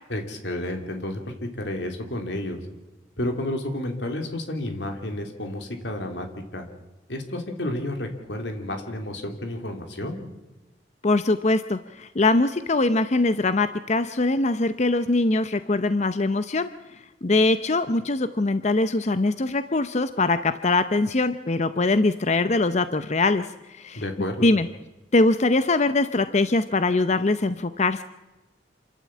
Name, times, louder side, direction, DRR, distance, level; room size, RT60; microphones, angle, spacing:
voice 1, 0.1-2.6 3.2-6.3 6.5-6.7 7.1-10.2 23.9-24.5, left 1 dB, 85° left, 5 dB, 2.9 m, -31 dB
voice 2, 11.0-16.7 17.2-24.0 24.4-24.7 25.1-28.0, left 2 dB, 40° left, 11 dB, 0.7 m, -22 dB
27.5 x 12.5 x 8.5 m, 1.1 s
head